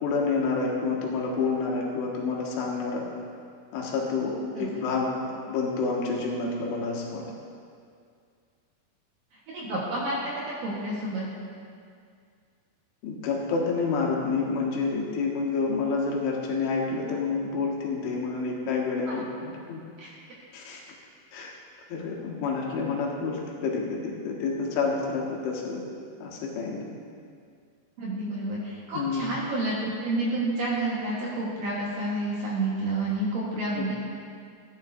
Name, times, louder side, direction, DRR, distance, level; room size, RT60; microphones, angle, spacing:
voice 1, 0.0-3.0 3.7-5.1 5.5-7.2 13.0-19.8 20.5-20.9 21.3-21.5 21.9-25.8 26.2-26.9 28.9-29.3 33.8-33.9, left 4 dB, 85° left, -2 dB, 3.8 m, -28 dB
voice 2, 9.5-11.2 19.1-19.2 20.0-20.1 28.0-33.9, right 2 dB, 60° right, -6 dB, 2.6 m, -29 dB
14.5 x 10.5 x 2.7 m, 2.2 s
omnidirectional pair, 5.3 m